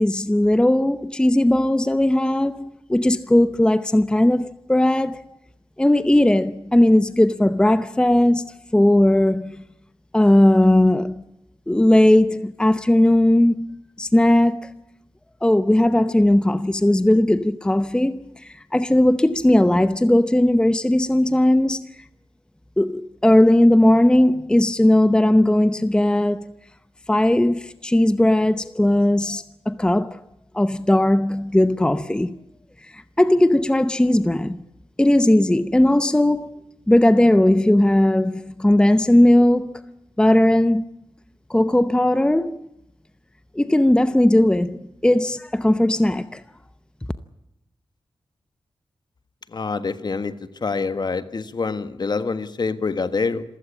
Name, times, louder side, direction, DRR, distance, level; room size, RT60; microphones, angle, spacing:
voice 1, 0.0-5.4 5.8-9.6 10.1-11.2 11.7-14.8 15.4-21.9 22.8-26.5 27.1-30.2 30.5-32.4 32.8-34.6 35.0-36.5 36.9-39.8 40.2-40.8 41.5-42.7 43.5-46.4, left 1 dB, 10° left, 0.7 m, -18 dB
voice 2, 49.5-50.3 50.6-53.4, left 4 dB, 45° left, 1.5 m, -25 dB
27.5 x 15.5 x 8.5 m
wide cardioid pair, 120°, 10 cm